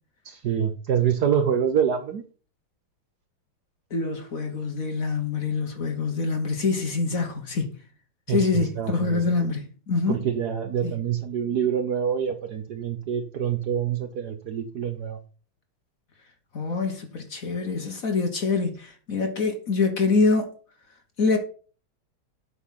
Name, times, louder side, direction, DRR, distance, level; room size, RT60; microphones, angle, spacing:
voice 1, 0.2-2.2 8.3-9.2 10.1-15.2, right 8 dB, 60° right, 1.2 m, -26 dB
voice 2, 3.9-7.7 8.3-10.2 10.8-10.9 16.5-20.5 21.2-21.4, left 4 dB, 45° left, 1.4 m, -25 dB
8.3 x 5.9 x 5.7 m
omnidirectional pair, 2.3 m